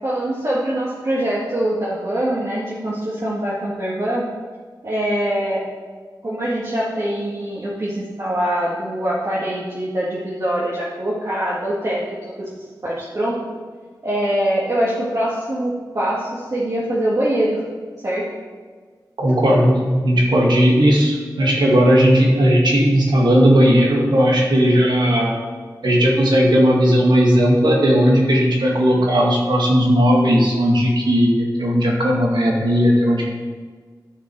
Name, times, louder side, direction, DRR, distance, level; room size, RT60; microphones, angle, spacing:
voice 1, 0.0-4.2 4.8-5.6 6.2-12.0 12.4-13.4 14.0-17.6 18.0-18.3, right 1 dB, 50° right, -7 dB, 1.9 m, -23 dB
voice 2, 19.2-25.4 25.8-33.3, equal, 85° right, -2 dB, 2.0 m, -16 dB
11.0 x 6.7 x 4.7 m, 1.5 s
wide cardioid pair, 95°, 7 cm